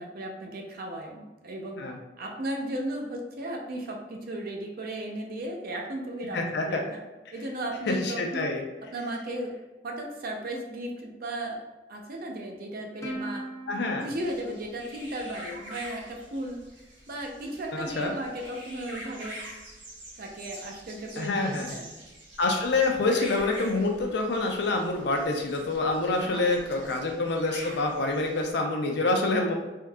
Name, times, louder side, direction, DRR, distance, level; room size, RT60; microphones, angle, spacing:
voice 1, 0.0-1.8 2.2-7.0 7.3-8.5 8.9-9.5 9.8-11.6 11.9-13.4 14.0-16.6 17.1-19.4 20.2-22.0 26.2-26.4 26.8-26.9, right 1 dB, 55° right, 2 dB, 0.5 m, -35 dB
voice 2, 6.3-6.8 7.9-8.6 13.7-14.1 17.7-18.1 21.2-21.7 22.4-29.5, left 2 dB, 65° left, 2 dB, 0.5 m, -27 dB
Plucked string instrument, 13.0-15.8, right 1 dB, 15° left, 0.5 m, -40 dB
sound 1, 14.1-28.5, equal, 85° right, 0.9 m, -46 dB
3.6 x 2.7 x 2.3 m, 1.1 s
head